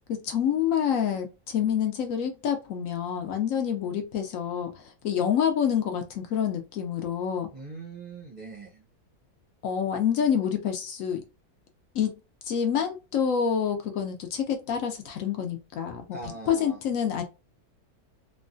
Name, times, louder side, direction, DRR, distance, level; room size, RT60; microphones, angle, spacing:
voice 1, 0.1-7.5 9.6-11.2 11.9-12.1 12.5-16.1 16.5-17.2, left 8 dB, 70° left, 0.9 m, -27 dB
voice 2, 7.5-8.8 16.1-16.8, right 3 dB, 45° right, 0.6 m, -41 dB
3.0 x 2.2 x 2.5 m
omnidirectional pair, 1.6 m